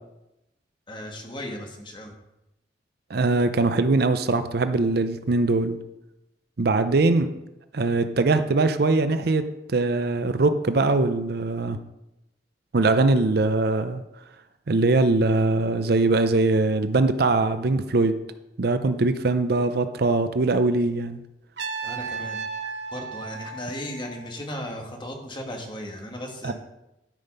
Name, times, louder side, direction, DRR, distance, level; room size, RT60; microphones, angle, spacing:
voice 1, 0.9-2.1 21.8-22.4 22.9-26.5, left 1 dB, 25° left, 2 dB, 1.7 m, -36 dB
voice 2, 3.1-5.8 6.6-7.3 7.7-11.8 12.7-14.0 14.7-18.2 18.6-21.2 26.4-26.5, right 3 dB, 60° right, 10 dB, 0.6 m, -22 dB
Trumpet, 21.6-24.5, right 5 dB, 75° right, 1.0 m, -34 dB
12.5 x 5.6 x 5.5 m, 0.92 s
head